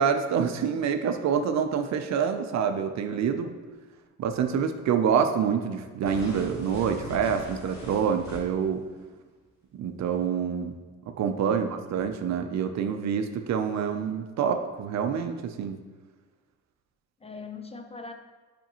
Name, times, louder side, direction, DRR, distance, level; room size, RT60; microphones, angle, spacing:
voice 1, 0.0-3.5 4.2-8.8 9.7-10.8 11.2-15.8, right 7 dB, 65° right, 7 dB, 0.6 m, -27 dB
sound 1, 6.0-8.7, left 1 dB, 65° left, 1.9 m, -41 dB
voice 2, 11.4-11.9 17.2-18.1, left 3 dB, 20° left, 5 dB, 0.5 m, -41 dB
6.8 x 5.1 x 3.0 m, 1.4 s
cardioid pair, 90°, 30 cm